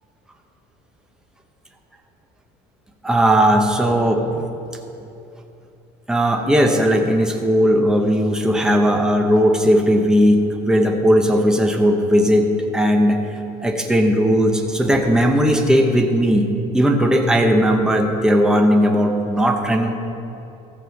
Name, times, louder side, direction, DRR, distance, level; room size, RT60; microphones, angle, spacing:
voice 1, 3.0-4.5 6.1-13.2 13.6-20.0, equal, 5° right, 3 dB, 0.8 m, -17 dB
14.0 x 5.5 x 7.8 m, 2.8 s
cardioid pair, 170°, 16 cm